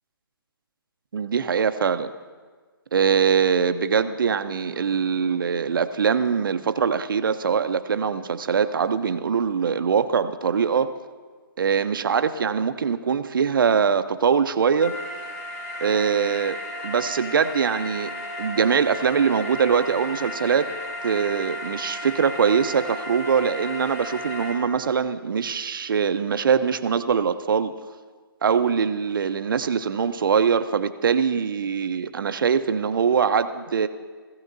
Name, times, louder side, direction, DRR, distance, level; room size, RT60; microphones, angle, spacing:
voice 1, 1.1-2.1 2.9-10.9 11.6-15.0 15.8-16.6 16.8-20.7 21.0-27.7 28.4-33.9, right 6 dB, 60° right, 11 dB, 0.7 m, -22 dB
sound 1, 14.8-24.5, left 1 dB, 35° left, 1.9 m, -34 dB
16.5 x 16.0 x 2.7 m, 1.5 s
hypercardioid pair, 150°, 13 cm